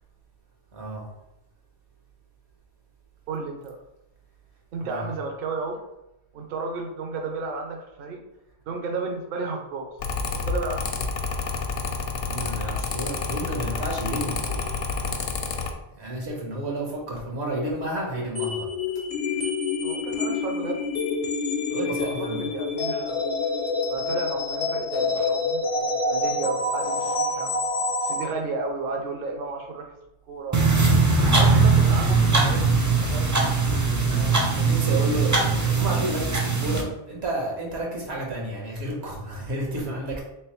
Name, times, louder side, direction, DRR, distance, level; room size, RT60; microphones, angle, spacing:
voice 1, 0.7-1.1 4.8-5.1 12.2-14.6 16.0-18.7 21.7-22.4 34.1-40.2, right 1 dB, 85° right, -1 dB, 1.3 m, -31 dB
voice 2, 3.3-3.8 4.7-5.8 6.3-8.2 8.7-9.9 10.3-11.1 19.8-20.8 21.8-23.2 23.8-27.5 28.0-29.9 30.3-30.6 31.2-32.8 33.1-33.5, right 3 dB, 65° right, 2 dB, 0.7 m, -33 dB
Mechanical fan, 10.0-15.7, left 4 dB, 70° left, 0.8 m, -29 dB
sound 1, 18.4-28.3, left 3 dB, 45° left, 0.5 m, -27 dB
sound 2, 30.5-36.8, right 4 dB, 25° right, 0.4 m, -20 dB
3.5 x 3.1 x 3.0 m, 0.90 s
omnidirectional pair, 1.1 m